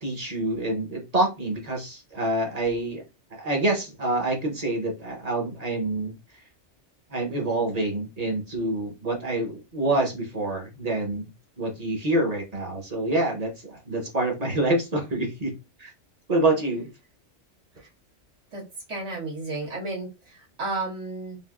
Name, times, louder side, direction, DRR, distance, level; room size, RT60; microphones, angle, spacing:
voice 1, 0.0-3.0 3.3-6.1 7.1-11.3 11.6-15.5 15.8-15.9 16.3-16.9, right 2 dB, 40° right, 1 dB, 0.8 m, -26 dB
voice 2, 18.9-21.4, right 2 dB, 75° right, -5 dB, 1.6 m, -33 dB
3.5 x 2.5 x 2.3 m, 0.27 s
omnidirectional pair, 1.2 m